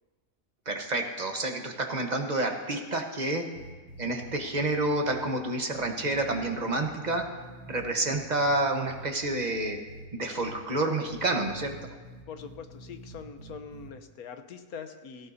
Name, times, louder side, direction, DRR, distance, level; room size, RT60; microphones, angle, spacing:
voice 1, 0.7-3.5 4.0-7.2 7.7-9.8 10.1-11.7, right 2 dB, 30° right, 3 dB, 1.1 m, -29 dB
sound 1, 3.5-4.7 5.0-5.2 5.7-8.6 8.9-10.1 10.4-10.5 11.0-13.9, right 2 dB, 60° right, 1.9 m, -46 dB
voice 2, 12.3-15.3, left 6 dB, 70° left, 7 dB, 1.3 m, -43 dB
17.5 x 15.5 x 2.7 m, 1.3 s
omnidirectional pair, 1.7 m